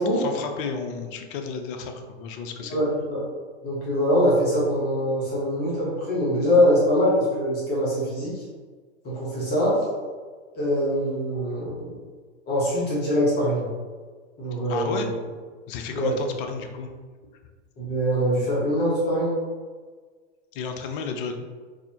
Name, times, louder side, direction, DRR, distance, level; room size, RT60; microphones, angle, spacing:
voice 1, 0.2-2.8 14.7-15.1 15.7-16.9 20.5-21.4, left 5 dB, 50° left, 5 dB, 0.6 m, -32 dB
voice 2, 2.7-3.2 3.6-8.4 9.0-9.8 10.5-11.9 12.5-13.7 14.4-15.1 15.9-16.1 17.8-19.4, equal, 30° left, -6 dB, 1.1 m, -23 dB
4.0 x 2.7 x 2.8 m, 1.5 s
hypercardioid pair, 110°, 34 cm